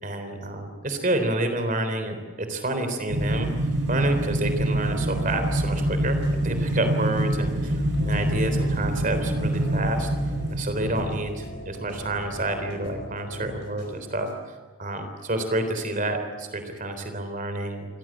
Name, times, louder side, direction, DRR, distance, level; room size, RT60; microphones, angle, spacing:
voice 1, 0.0-3.5 3.9-6.2 6.4-10.1 10.5-14.3 14.8-17.9, right 1 dB, 35° right, 7 dB, 3.6 m, -29 dB
sound 1, 3.1-11.3, right 1 dB, 55° right, 5.3 m, -26 dB
sound 2, 4.8-14.3, equal, 50° left, 4.4 m, -41 dB
27.5 x 17.0 x 9.0 m, 1.4 s
head